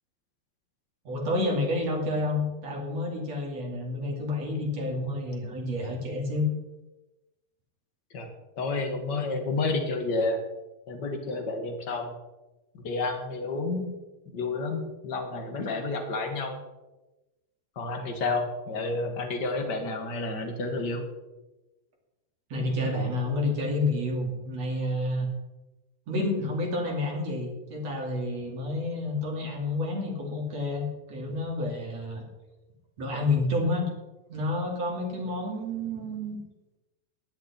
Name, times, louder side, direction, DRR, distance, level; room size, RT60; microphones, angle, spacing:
voice 1, 1.1-6.5 22.5-25.3 26.1-32.2 33.0-33.9 34.3-36.4, left 2 dB, 45° right, 0 dB, 3.5 m, -29 dB
voice 2, 8.6-10.4 10.9-12.1 12.8-13.9 14.3-16.6 17.7-21.0, left 3 dB, 45° left, 4 dB, 1.4 m, -30 dB
17.5 x 11.0 x 4.4 m, 1.1 s
omnidirectional pair, 4.5 m